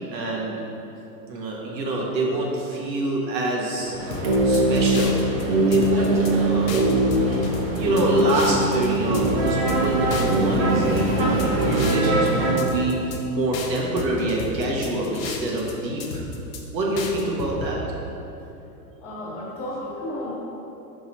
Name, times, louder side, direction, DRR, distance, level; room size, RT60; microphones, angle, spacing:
voice 1, 0.1-0.6 1.3-3.9 4.4-5.3 5.7-6.1 6.4-6.8 7.6-13.0 13.3-16.2 16.7-17.8, right 2 dB, 85° right, -2 dB, 1.4 m, -26 dB
sound 1, 3.8-12.5, right 1 dB, 35° right, 0.9 m, -22 dB
sound 2, 4.1-5.4 5.7-6.3 6.7-8.9 9.1-9.8 10.1-12.3 12.6-13.2 13.5-15.7 16.0-16.6 17.0-17.7, left 4 dB, 55° left, 0.8 m, -34 dB
voice 2, 19.0-20.3, left 1 dB, 15° left, -14 dB, 0.9 m, -32 dB
5.7 x 5.5 x 4.0 m, 2.9 s
supercardioid pair, 180°, 49 cm